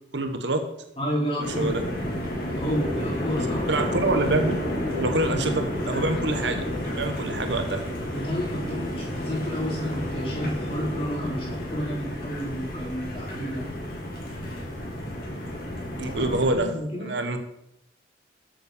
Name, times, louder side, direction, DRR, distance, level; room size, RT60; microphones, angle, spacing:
voice 1, 0.1-0.6 1.6-1.8 3.4-4.5 4.9-7.8 16.0-17.4, right 2 dB, 75° right, 7 dB, 1.4 m, -26 dB
voice 2, 1.0-1.7 2.6-3.7 8.1-13.7 16.1-17.1, equal, 30° left, -4 dB, 4.6 m, -30 dB
sound 1, 1.4-16.5, left 1 dB, 50° left, 3.5 m, -31 dB
13.5 x 8.0 x 5.3 m, 0.82 s
head